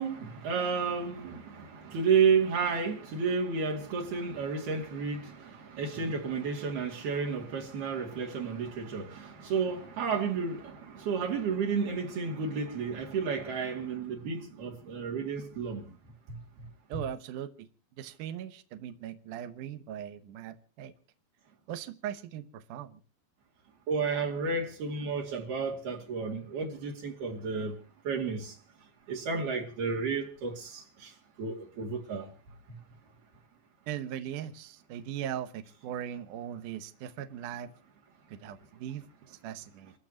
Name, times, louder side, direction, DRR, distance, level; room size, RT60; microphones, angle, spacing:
voice 1, 0.0-15.8 16.9-17.0 23.9-27.8 28.0-28.6 29.1-31.1 31.4-32.3, right 5 dB, 60° right, 4.1 m, -31 dB
voice 2, 16.9-17.7 18.0-20.9 21.7-23.0 33.9-37.7 38.3-39.9, right 10 dB, 80° right, 1.8 m, -39 dB
29.0 x 14.5 x 3.0 m
omnidirectional pair, 5.4 m